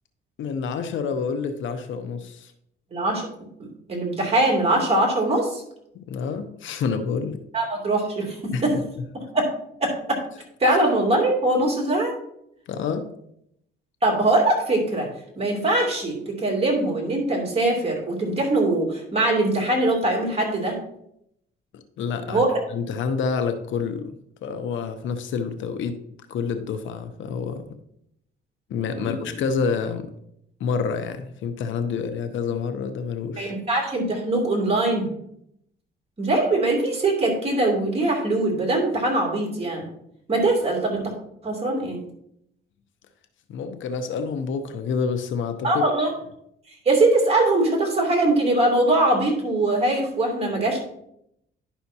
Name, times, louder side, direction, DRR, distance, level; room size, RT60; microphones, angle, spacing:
voice 1, 0.4-2.5 5.9-7.4 8.5-8.6 12.7-13.0 21.7-22.4 22.7-24.1 24.4-26.0 26.3-27.6 28.7-30.1 30.6-33.5 43.5-45.7, left 5 dB, 75° left, 8 dB, 0.8 m, -28 dB
voice 2, 2.9-3.3 3.6-5.6 7.5-8.7 9.3-9.4 9.8-9.9 10.6-12.1 14.0-15.1 15.4-20.8 22.3-22.6 28.9-29.2 33.4-35.1 36.2-39.9 40.3-41.1 41.4-42.0 45.6-46.1 46.8-50.8, right 2 dB, 30° right, -1 dB, 2.7 m, -22 dB
10.5 x 5.7 x 2.8 m, 0.75 s
cardioid pair, 90°, 20 cm